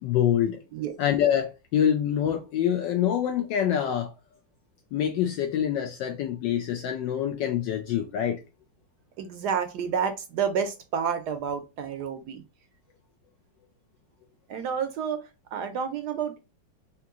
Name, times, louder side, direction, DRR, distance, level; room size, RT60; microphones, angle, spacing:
voice 1, 0.0-0.6 1.0-4.1 4.9-8.4, left 9 dB, 75° left, 1.2 m, -25 dB
voice 2, 9.2-12.4 14.5-16.4, right 7 dB, 70° right, 1.1 m, -30 dB
3.7 x 2.9 x 3.5 m
omnidirectional pair, 2.1 m